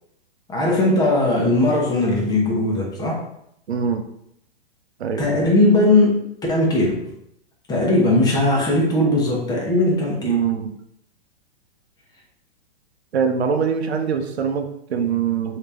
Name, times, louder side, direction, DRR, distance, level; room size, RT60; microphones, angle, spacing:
voice 1, 0.5-3.2 5.2-6.2 6.5-7.1 7.7-10.3, left 2 dB, 10° left, -3 dB, 0.9 m, -19 dB
voice 2, 3.7-4.0 5.0-5.3 10.2-10.7 13.1-15.6, right 7 dB, 90° right, 6 dB, 0.6 m, -23 dB
3.2 x 2.8 x 3.3 m, 0.75 s
hypercardioid pair, 130°, 31 cm